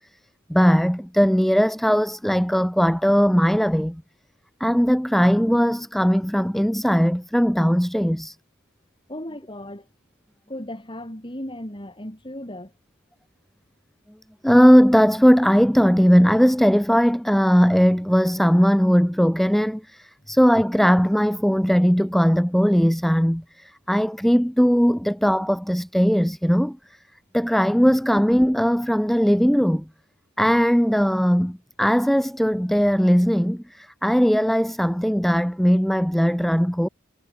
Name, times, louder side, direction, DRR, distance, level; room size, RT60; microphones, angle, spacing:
voice 1, 0.5-4.0 4.6-8.4 14.4-26.8 27.3-29.8 30.4-36.9, equal, ahead, 0.6 m, -19 dB
voice 2, 9.1-9.9 10.5-12.7 20.2-20.4, left 1 dB, 25° left, 6.1 m, -36 dB
head